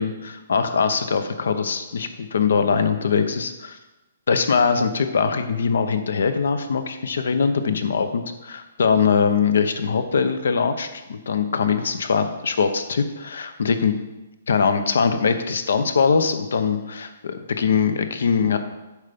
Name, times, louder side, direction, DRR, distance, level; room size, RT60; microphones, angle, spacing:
voice 1, 0.0-3.8 4.3-14.0 14.5-18.6, left 5 dB, 75° left, 9 dB, 0.9 m, -22 dB
8.0 x 5.7 x 5.2 m, 1.0 s
hypercardioid pair, 150°, 0 cm